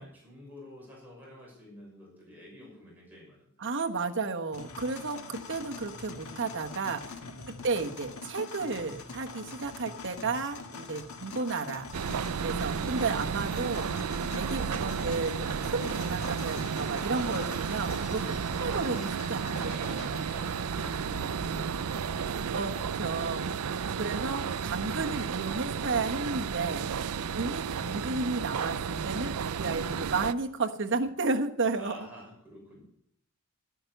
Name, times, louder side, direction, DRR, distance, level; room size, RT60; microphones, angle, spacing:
voice 1, 0.0-3.7 10.7-10.9 20.3-23.0 26.8-27.0 31.8-32.8, equal, 10° right, -5 dB, 6.1 m, -51 dB
voice 2, 3.6-7.0 7.6-11.9 12.4-14.0 14.3-18.2 18.6-20.1 22.5-23.7 24.0-26.9 27.3-32.1, right 3 dB, 55° right, 4 dB, 1.3 m, -33 dB
sound 1, 4.5-22.1, left 4 dB, 75° left, 1.7 m, -44 dB
sound 2, 11.9-30.3, right 6 dB, 85° right, 0.5 m, -33 dB
12.0 x 10.0 x 7.8 m, 0.70 s
head